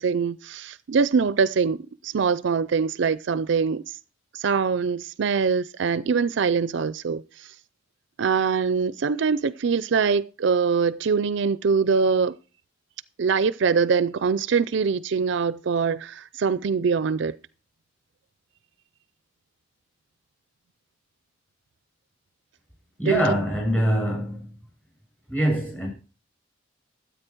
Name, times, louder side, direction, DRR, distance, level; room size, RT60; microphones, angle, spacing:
voice 1, 0.0-3.8 4.3-7.2 8.2-12.3 13.2-17.4 23.0-23.2, right 5 dB, 65° right, 0.4 m, -23 dB
voice 2, 23.0-24.5 25.3-25.9, equal, 10° left, 7.9 m, -24 dB
13.0 x 8.4 x 4.5 m
head